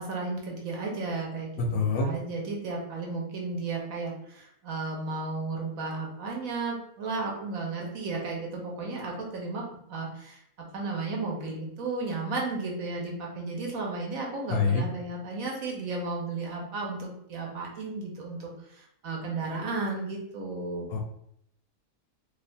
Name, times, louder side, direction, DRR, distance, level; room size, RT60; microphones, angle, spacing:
voice 1, 0.0-20.9, right 3 dB, 65° right, -1 dB, 1.0 m, -34 dB
voice 2, 1.6-2.1 14.5-14.8 20.9-21.0, left 4 dB, 70° left, 1 dB, 0.9 m, -25 dB
2.7 x 2.4 x 4.2 m, 0.74 s
omnidirectional pair, 1.8 m